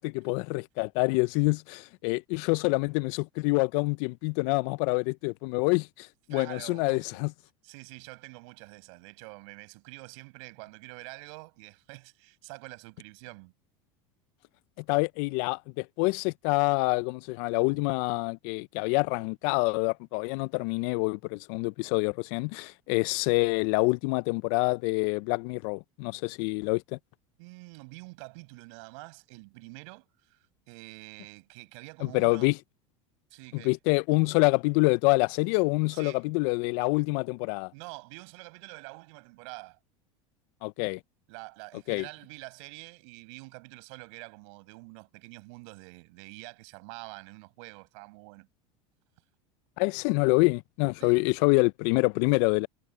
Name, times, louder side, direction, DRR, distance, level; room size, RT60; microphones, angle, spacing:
voice 1, 0.0-7.3 14.9-27.0 32.1-32.6 33.5-37.7 40.6-41.0 41.9-42.1 49.8-52.7, left 28 dB, 65° left, 0.6 m, -26 dB
voice 2, 6.3-7.2 7.6-13.5 27.4-30.4 30.7-32.5 33.3-33.8 35.9-36.2 37.7-39.8 41.3-48.5 51.0-51.2, right 31 dB, 70° right, 6.4 m, -46 dB
hypercardioid pair, 95°, 16 cm